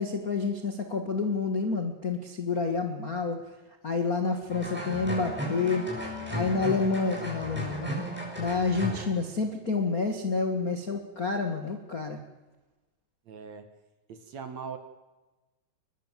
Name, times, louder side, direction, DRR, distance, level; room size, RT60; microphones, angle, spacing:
voice 1, 0.0-3.4 3.8-7.9 8.4-12.2, left 4 dB, 40° left, 4 dB, 1.3 m, -29 dB
sound 1, 4.5-9.1, equal, ahead, 7.8 m, -35 dB
voice 2, 13.3-13.7 14.1-14.8, right 6 dB, 55° right, 8 dB, 2.5 m, -40 dB
22.5 x 21.0 x 7.6 m, 1.2 s
omnidirectional pair, 4.4 m